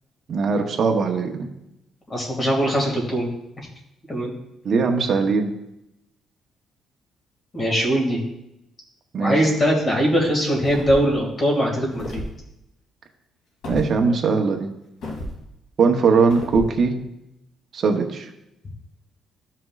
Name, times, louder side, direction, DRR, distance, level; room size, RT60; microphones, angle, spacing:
voice 1, 0.3-1.5 4.6-5.5 9.1-9.4 13.7-14.7 15.8-17.0 17.7-18.3, right 4 dB, 45° right, 3 dB, 0.9 m, -20 dB
voice 2, 2.1-3.3 4.1-4.3 7.5-8.2 9.2-12.2, equal, 25° left, -1 dB, 2.1 m, -21 dB
sound 1, 10.6-11.2 11.9-12.3 13.6-13.9 15.0-15.4 16.3-16.7, left 1 dB, 75° left, 2.2 m, -32 dB
12.5 x 5.9 x 2.4 m, 0.85 s
cardioid pair, 155°, 0 cm